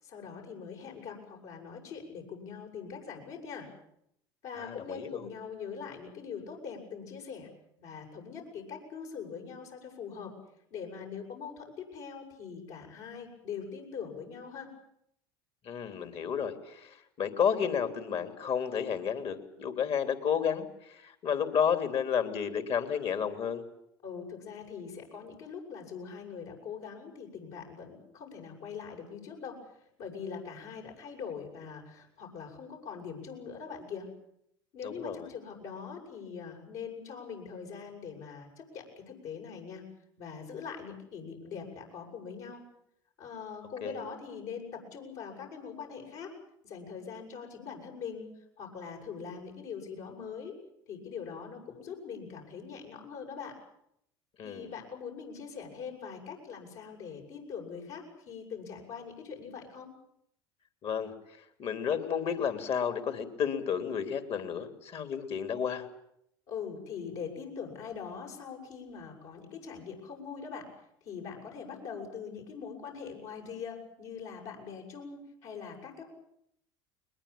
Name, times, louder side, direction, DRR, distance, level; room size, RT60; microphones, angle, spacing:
voice 1, 0.0-3.7 4.4-7.5 7.8-10.3 10.7-14.7 24.0-34.1 34.7-39.8 40.2-42.6 43.2-46.3 46.6-48.3 48.6-50.5 50.9-53.5 54.4-59.9 66.5-70.7 71.0-76.0, left 6 dB, 65° left, 1 dB, 8.0 m, -42 dB
voice 2, 4.6-5.3 15.6-23.6 34.8-35.3 43.8-44.0 54.4-54.7 60.8-65.9, left 7 dB, 45° left, 8 dB, 3.4 m, -32 dB
21.5 x 21.0 x 8.7 m, 0.74 s
hypercardioid pair, 80°, 13 cm